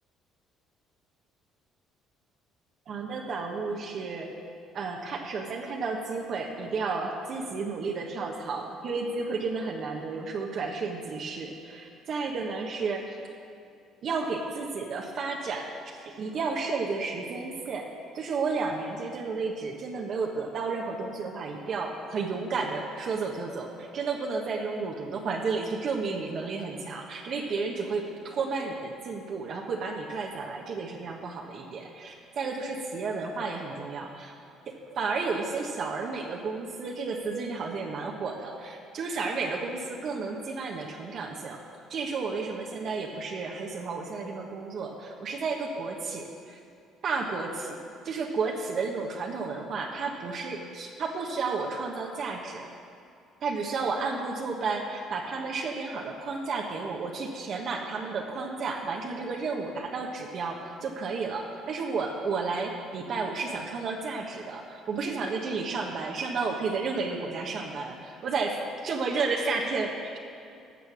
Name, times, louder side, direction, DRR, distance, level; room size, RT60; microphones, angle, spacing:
voice 1, 2.9-4.3 4.7-13.1 14.0-17.9 18.1-34.3 34.7-41.6 41.9-46.6 47.0-47.8 48.0-52.7 53.4-70.2, right 4 dB, 55° right, 0 dB, 1.2 m, -32 dB
13.5 x 6.8 x 6.2 m, 2.4 s
supercardioid pair, 90°, 0 cm